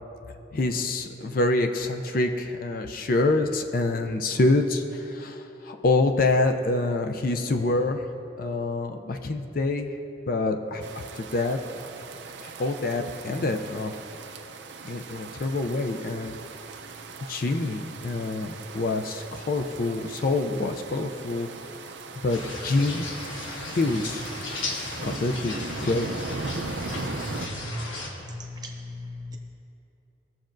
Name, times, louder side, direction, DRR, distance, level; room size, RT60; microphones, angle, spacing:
voice 1, 0.5-8.1 8.4-10.0 10.3-10.9 11.2-11.6 12.4-13.9 14.8-16.3 17.3-21.5 22.2-23.1 23.6-24.3 25.0-26.1, left 2 dB, 45° left, 5 dB, 0.4 m, -26 dB
sound 1, 10.8-27.5, right 4 dB, 65° right, 0.6 m, -39 dB
sound 2, 22.3-28.1, left 2 dB, 85° left, 1.3 m, -35 dB
voice 2, 28.2-29.4, left 2 dB, 20° right, 1 dB, 0.8 m, -38 dB
18.0 x 7.2 x 2.6 m, 2.9 s
head